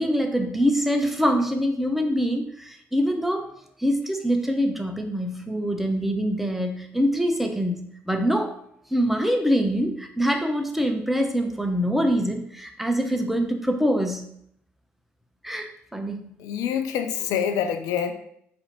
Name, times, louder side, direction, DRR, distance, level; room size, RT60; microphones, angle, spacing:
voice 1, 0.0-3.5 3.8-8.6 8.9-14.3 15.4-16.2, equal, 5° right, 4 dB, 0.7 m, -24 dB
voice 2, 16.4-18.1, left 8 dB, 65° left, 8 dB, 0.5 m, -26 dB
4.2 x 2.8 x 4.0 m, 0.69 s
figure-of-eight pair, 45°, 7 cm